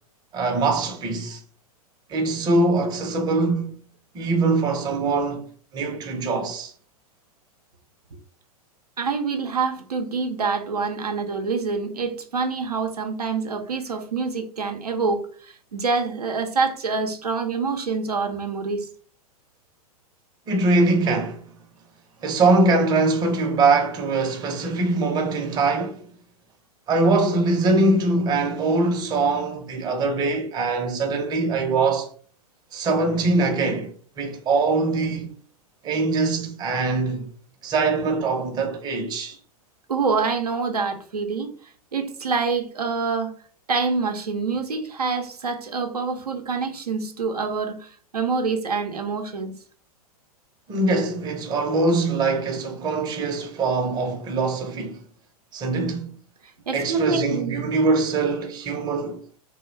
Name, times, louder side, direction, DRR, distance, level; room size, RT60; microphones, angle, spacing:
voice 1, 0.3-1.4 2.1-3.8 4.1-5.5 5.7-6.7 20.5-21.5 22.2-26.1 26.9-32.1 32.7-33.9 34.2-35.3 35.8-37.3 37.6-39.4 50.7-55.0 55.5-56.2 56.7-59.2, right 3 dB, 20° right, 0.5 m, -22 dB
voice 2, 9.0-18.9 39.9-41.5 41.9-43.3 43.7-49.6 56.7-57.7, right 4 dB, 90° right, 0.5 m, -26 dB
2.2 x 2.0 x 3.1 m
hypercardioid pair, 105°, 19 cm